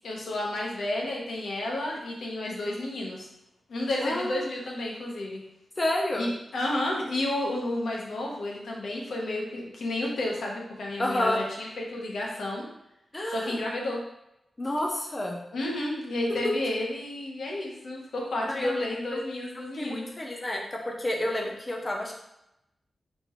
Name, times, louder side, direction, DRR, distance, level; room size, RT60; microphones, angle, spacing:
voice 1, 0.0-3.3 3.7-5.4 6.1-12.7 13.3-14.0 15.5-20.1, left 1 dB, 80° left, -2 dB, 1.0 m, -31 dB
voice 2, 4.0-4.4 5.8-6.3 11.0-11.4 13.1-13.6 14.6-15.4 18.5-19.2 19.7-22.1, left 1 dB, 25° left, 0 dB, 0.7 m, -29 dB
4.2 x 3.2 x 3.0 m, 0.84 s
wide cardioid pair, 155°, 0 cm